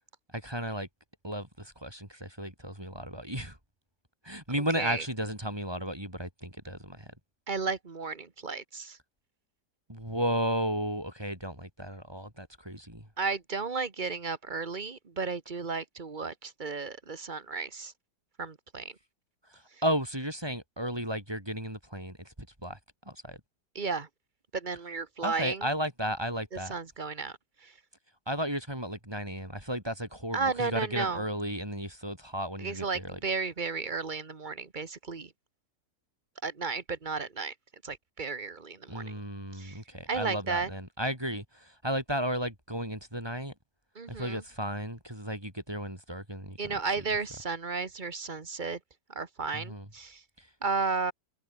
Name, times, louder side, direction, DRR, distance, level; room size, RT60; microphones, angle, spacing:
voice 1, 0.3-0.9 1.2-3.6 4.2-7.1 9.9-13.1 19.8-22.3 22.6-22.8 23.0-23.4 25.2-26.7 28.3-33.2 38.9-43.5 44.1-46.8 49.5-49.9 50.4-50.5, equal, 15° right, 6.6 m, -34 dB
voice 2, 7.5-9.0 13.2-17.9 18.4-18.9 23.7-24.1 24.5-25.7 26.5-27.7 30.3-31.2 32.6-35.3 36.4-37.5 37.8-39.1 39.5-39.8 40.1-40.7 43.9-44.4 46.6-48.8 49.1-50.2 50.6-51.1, right 4 dB, 30° right, 1.5 m, -33 dB
omnidirectional pair, 1.8 m